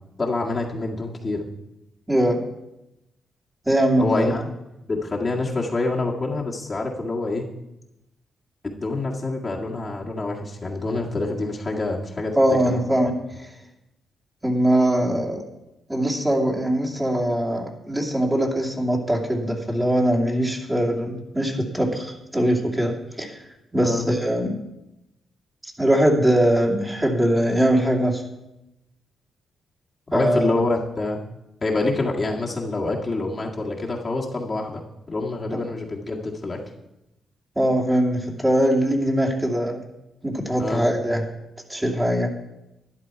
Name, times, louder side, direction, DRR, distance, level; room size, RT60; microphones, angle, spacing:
voice 1, 0.2-1.4 4.0-4.4 4.9-7.4 8.6-12.6 23.8-24.1 30.1-31.2 31.6-34.8 35.1-36.6 40.6-40.9, left 2 dB, 35° left, -2 dB, 1.9 m, -26 dB
voice 2, 2.1-2.4 3.7-4.3 12.4-13.5 14.4-15.4 15.9-23.4 23.7-24.6 25.8-28.2 30.1-30.6 35.5-35.6 37.6-39.8 40.2-41.2 41.7-42.3, right 1 dB, 15° right, -1 dB, 2.6 m, -21 dB
12.5 x 10.5 x 4.6 m, 0.90 s
cardioid pair, 75°, 0 cm